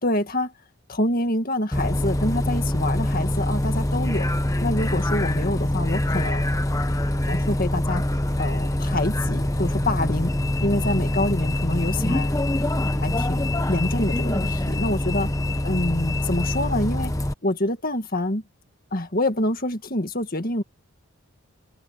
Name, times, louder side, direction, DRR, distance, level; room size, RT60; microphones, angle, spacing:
voice 1, 0.0-0.5 0.9-4.3 4.6-6.5 7.3-8.0 8.4-10.3 10.6-12.4 13.0-15.3 15.6-17.1 17.4-18.4 18.9-20.6, left 1 dB, 40° left, 2.0 m, -26 dB
Bus, 1.7-17.3, left 1 dB, 15° left, 1.0 m, -24 dB
head